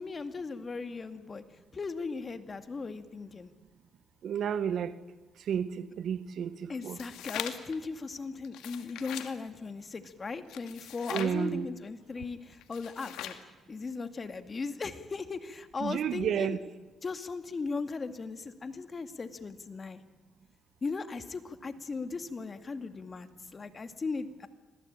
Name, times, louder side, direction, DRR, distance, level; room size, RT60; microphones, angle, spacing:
voice 1, 0.0-1.4 1.7-3.5 6.7-13.4 13.7-16.6 17.0-20.0 20.8-24.5, left 4 dB, 35° left, 9 dB, 2.2 m, -37 dB
voice 2, 4.2-4.9 5.5-7.0 11.1-11.7 15.8-16.6, right 8 dB, 65° right, 14 dB, 1.5 m, -31 dB
sound 1, 6.8-7.8 8.4-9.3 10.5-11.4 12.6-13.5, left 11 dB, 90° left, 2.1 m, -41 dB
26.0 x 20.0 x 9.0 m, 1.2 s
cardioid pair, 90°, 0 cm